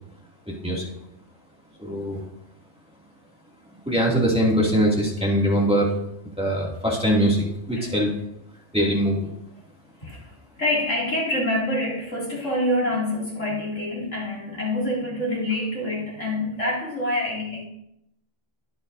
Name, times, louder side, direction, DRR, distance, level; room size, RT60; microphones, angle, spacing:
voice 1, 0.5-0.9 1.8-2.2 3.9-6.0 6.4-8.1 8.7-9.3, equal, 5° right, -4 dB, 2.4 m, -22 dB
voice 2, 10.0-10.3 10.6-17.7, left 1 dB, 70° left, -4 dB, 3.2 m, -26 dB
22.0 x 8.2 x 2.7 m, 0.78 s
omnidirectional pair, 1.3 m